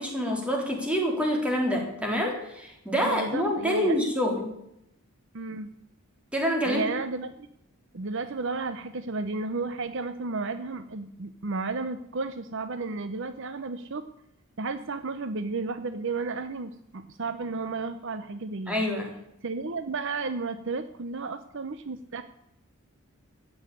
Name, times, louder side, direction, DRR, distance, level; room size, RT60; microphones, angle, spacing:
voice 1, 0.0-4.5 6.3-6.9 18.7-19.1, equal, 5° right, 0 dB, 3.4 m, -27 dB
voice 2, 3.0-4.1 5.3-5.7 6.6-7.3 7.9-14.0 14.6-18.9 19.4-22.2, right 3 dB, 55° right, 11 dB, 0.7 m, -33 dB
15.0 x 6.4 x 9.8 m, 0.80 s
head